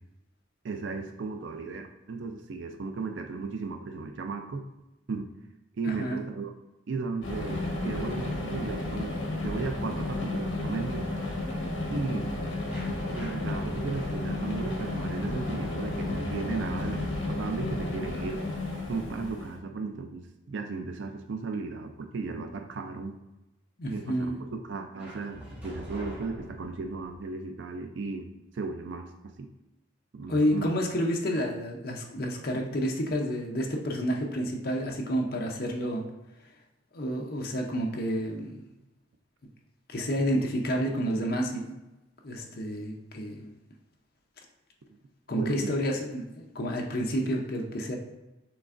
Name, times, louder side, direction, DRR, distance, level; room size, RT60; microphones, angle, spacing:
voice 1, 0.6-4.6 5.1-5.3 5.7-6.5 6.9-11.1 11.9-12.3 13.1-18.4 18.9-23.2 23.9-28.3 28.5-29.5 30.1-30.7 44.9-45.0 45.3-45.8, right 4 dB, 65° right, 5 dB, 0.4 m, -35 dB
voice 2, 5.9-6.2 23.8-24.4 30.3-36.0 36.9-38.6 39.9-41.8 42.2-43.5 45.3-48.0, equal, 50° left, 0 dB, 0.6 m, -29 dB
sound 1, 7.2-19.6, left 2 dB, 70° left, 1.1 m, -32 dB
sound 2, 12.7-19.5 25.0-27.2, equal, 10° right, 1.1 m, -46 dB
6.1 x 3.3 x 2.5 m, 0.97 s
head